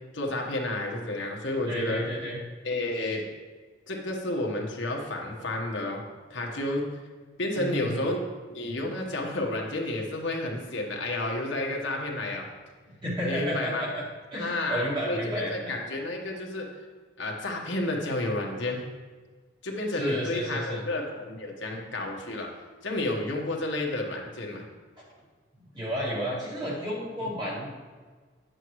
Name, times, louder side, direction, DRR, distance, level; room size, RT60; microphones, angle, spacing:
voice 1, 0.1-2.0 2.6-3.3 3.9-6.0 6.3-6.9 7.4-8.2 8.5-12.5 13.2-13.8 14.3-16.7 17.2-18.8 19.6-22.5 22.8-24.6 27.2-27.3, left 1 dB, 75° left, 0 dB, 1.3 m, -31 dB
voice 2, 1.7-2.4 7.5-8.0 13.0-14.0 14.3-15.7 19.9-20.8 25.7-27.7, equal, 25° right, -6 dB, 2.1 m, -31 dB
10.0 x 7.8 x 3.1 m, 1.5 s
head